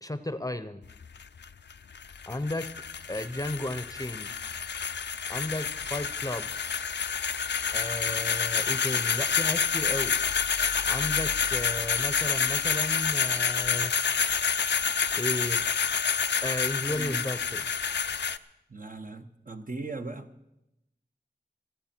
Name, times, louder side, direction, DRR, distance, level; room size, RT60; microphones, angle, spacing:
voice 1, 0.0-0.8 2.3-2.7 3.1-4.3 5.3-6.5 7.7-10.2 10.8-13.9 15.1-15.6 16.4-17.8, left 1 dB, 20° left, 12 dB, 0.7 m, -34 dB
sound 1, 0.8-18.4, left 6 dB, 85° left, 0.5 m, -28 dB
voice 2, 16.9-17.2 18.7-20.3, right 3 dB, 50° right, 6 dB, 1.1 m, -38 dB
26.5 x 9.2 x 4.4 m, 0.87 s
wide cardioid pair, 65°, 18 cm